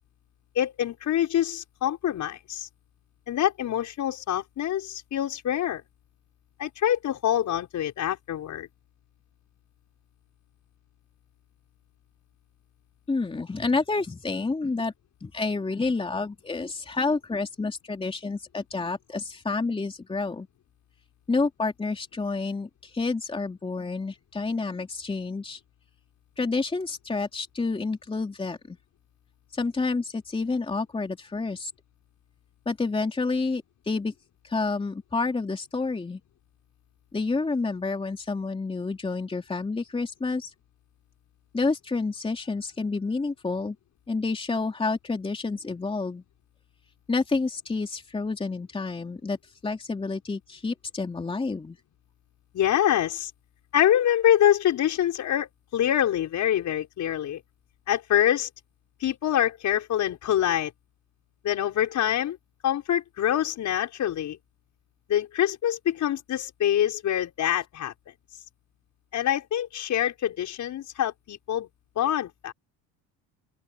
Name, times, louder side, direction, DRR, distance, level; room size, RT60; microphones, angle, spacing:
voice 1, 0.5-2.7 3.3-5.8 6.6-8.7 52.5-53.3 53.7-57.4 57.9-58.5 59.0-60.7 61.4-62.4 62.6-64.4 65.1-67.9 69.1-71.7 72.0-72.5, left 11 dB, 45° left, 6.0 m, -25 dB
voice 2, 13.1-14.9 15.2-20.5 21.3-25.6 26.4-28.8 29.5-31.7 32.6-34.1 34.4-36.2 37.1-40.5 41.5-43.7 44.1-46.2 47.1-51.8, left 3 dB, 15° left, 3.1 m, -29 dB
open air
cardioid pair, 120°, 39 cm